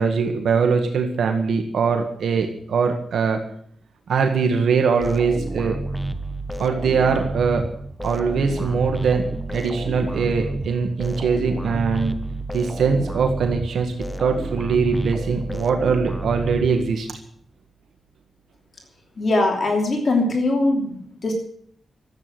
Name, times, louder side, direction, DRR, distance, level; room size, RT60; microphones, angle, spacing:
voice 1, 0.0-3.4 4.1-5.8 6.6-7.6 8.0-12.2 12.5-13.9 14.2-17.1, right 5 dB, 75° right, 5 dB, 1.8 m, -22 dB
sound 1, 5.0-17.2, right 2 dB, 5° left, 1.1 m, -30 dB
voice 2, 19.2-21.3, left 2 dB, 45° left, 1 dB, 3.0 m, -21 dB
13.5 x 8.7 x 9.3 m, 0.62 s
wide cardioid pair, 120°, 0 cm